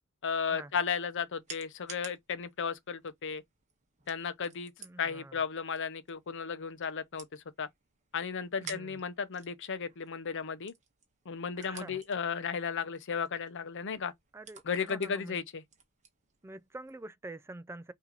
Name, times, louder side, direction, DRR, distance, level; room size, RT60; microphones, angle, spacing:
voice 1, 0.2-3.4 4.1-4.7 5.0-7.7 8.1-10.7 11.3-14.1 14.6-15.6, left 6 dB, 55° left, 0.7 m, -34 dB
sound 1, 0.6-17.0, right 6 dB, 35° right, 1.2 m, -54 dB
voice 2, 4.8-5.4 8.6-9.0 11.6-12.0 14.3-15.4 16.4-17.9, right 2 dB, 10° right, 0.3 m, -46 dB
5.8 x 2.8 x 3.0 m
head